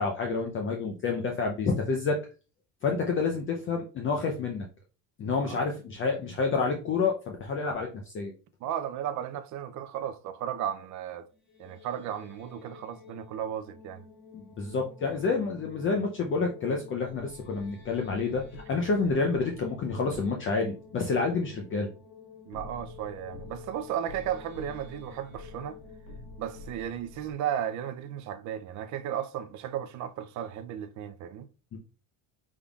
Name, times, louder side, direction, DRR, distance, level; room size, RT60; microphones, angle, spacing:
voice 1, 0.0-2.2 2.8-4.7 5.2-8.3 14.3-18.4 18.7-21.9 31.7-31.8, left 4 dB, 30° left, 0.6 m, -29 dB
voice 2, 8.6-11.3 11.6-14.0 22.5-25.8 26.4-31.5, right 10 dB, 40° right, 0.5 m, -35 dB
sound 1, 11.3-28.4, left 7 dB, 50° left, 1.7 m, -51 dB
sound 2, 17.0-21.7 22.5-27.3, left 2 dB, 70° left, 1.6 m, -48 dB
5.3 x 3.6 x 2.3 m
cardioid pair, 145°, 44 cm